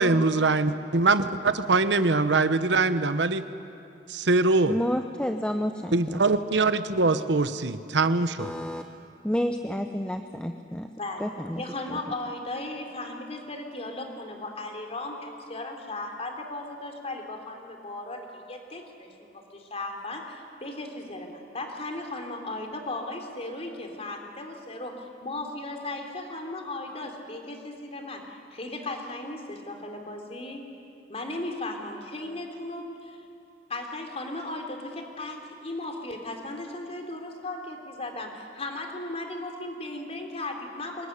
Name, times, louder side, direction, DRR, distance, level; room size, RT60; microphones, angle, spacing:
voice 1, 0.0-3.4 4.1-4.7 5.9-8.5, right 3 dB, 80° right, 11 dB, 1.1 m, -23 dB
voice 2, 4.6-6.2 8.4-8.8 9.2-10.9 11.2-11.6 11.9-12.0, equal, 5° left, 6 dB, 0.8 m, -30 dB
voice 3, 11.6-30.6 31.1-33.2 33.7-41.1, left 2 dB, 35° left, 3 dB, 3.4 m, -36 dB
25.0 x 21.0 x 10.0 m, 2.6 s
head